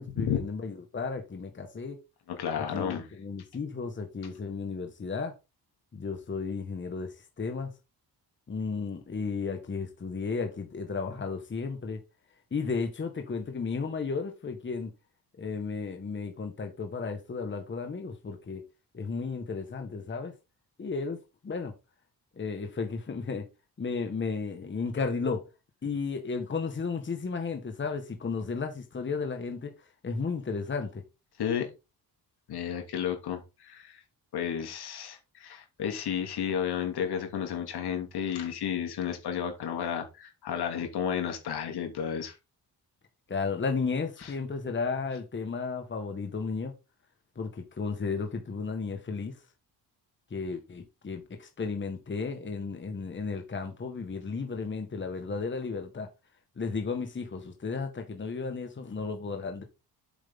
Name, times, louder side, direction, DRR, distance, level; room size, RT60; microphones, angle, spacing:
voice 1, 0.0-2.0 2.6-5.3 5.9-7.7 8.5-12.0 12.5-14.9 15.4-18.6 18.9-20.3 20.8-21.2 21.4-21.7 22.4-23.4 23.8-25.4 25.8-29.7 30.0-31.0 43.3-46.7 47.4-49.4 50.3-56.1 56.6-59.6, left 4 dB, 30° left, 1.7 m, -34 dB
voice 2, 2.4-3.1 31.4-31.7 32.5-34.0 34.3-42.3 44.2-44.3, left 8 dB, 75° left, 3.0 m, -32 dB
8.1 x 7.5 x 3.8 m
cardioid pair, 125°, 39 cm